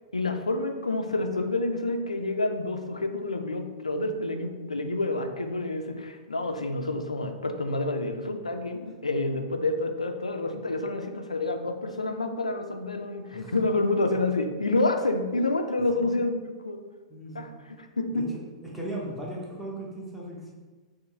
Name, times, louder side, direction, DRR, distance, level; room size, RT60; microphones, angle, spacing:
voice 1, 0.1-16.8 17.3-18.3, left 2 dB, 80° left, 6 dB, 0.4 m, -28 dB
voice 2, 17.1-17.5 18.1-18.2 18.6-20.5, right 1 dB, ahead, -5 dB, 1.0 m, -37 dB
6.0 x 2.1 x 3.2 m, 1.4 s
figure-of-eight pair, 100°, 3 cm